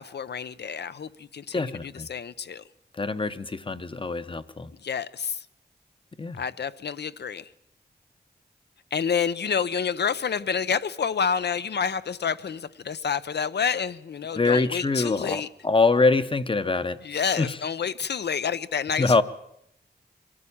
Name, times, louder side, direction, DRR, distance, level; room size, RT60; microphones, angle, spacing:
voice 1, 0.0-2.6 4.8-5.5 6.4-7.5 8.9-15.5 17.0-19.2, left 6 dB, 75° left, 0.7 m, -29 dB
voice 2, 1.5-2.1 3.0-4.7 6.2-6.4 14.4-17.0 17.4-17.5 19.0-19.2, left 3 dB, 30° left, 0.9 m, -24 dB
23.0 x 13.5 x 8.6 m
wide cardioid pair, 135°, 17 cm